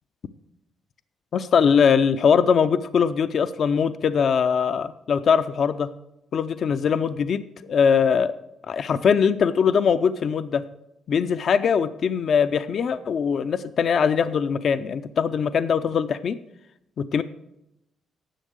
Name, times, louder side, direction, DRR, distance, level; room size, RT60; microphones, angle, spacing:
voice 1, 1.3-5.9 6.3-8.3 8.7-10.6 11.1-16.4 17.0-17.2, left 6 dB, 55° left, 12 dB, 0.4 m, -21 dB
10.0 x 7.2 x 6.4 m, 0.86 s
cardioid pair, 90°, 0 cm